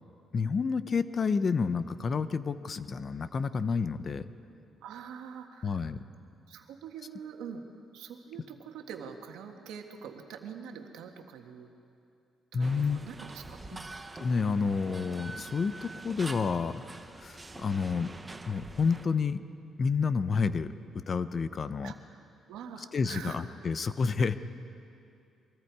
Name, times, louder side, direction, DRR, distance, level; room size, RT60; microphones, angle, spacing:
voice 1, 0.3-4.3 5.6-6.0 12.5-13.0 14.2-18.1 18.4-19.4 19.8-21.9 22.9-24.4, left 5 dB, 45° left, 13 dB, 0.8 m, -29 dB
voice 2, 4.8-5.8 6.5-7.6 7.9-11.7 12.5-13.9 21.8-21.9 22.5-23.4, right 7 dB, 90° right, 4 dB, 1.7 m, -44 dB
sound 1, 12.6-19.1, right 2 dB, 20° right, 1.1 m, -45 dB
23.5 x 22.5 x 4.8 m, 2.6 s
cardioid pair, 90°, 0 cm